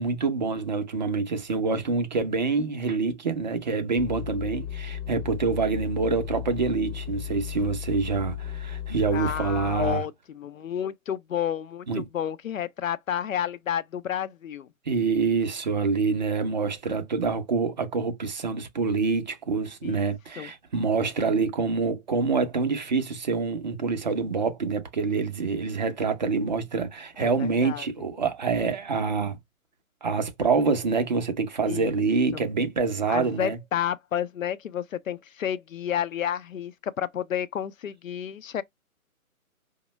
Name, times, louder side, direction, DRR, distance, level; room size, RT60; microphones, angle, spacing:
voice 1, 0.0-10.0 11.9-12.0 14.9-29.4 30.0-33.6, right 4 dB, 30° right, 0.5 m, -26 dB
sound 1, 4.0-9.9, left 10 dB, 45° left, 1.0 m, -35 dB
voice 2, 9.1-14.7 19.8-20.0 20.4-20.5 27.2-27.8 31.7-31.9 32.3-32.5 33.1-38.6, left 9 dB, 65° left, 0.6 m, -31 dB
5.1 x 2.1 x 3.1 m
figure-of-eight pair, 140°, 43 cm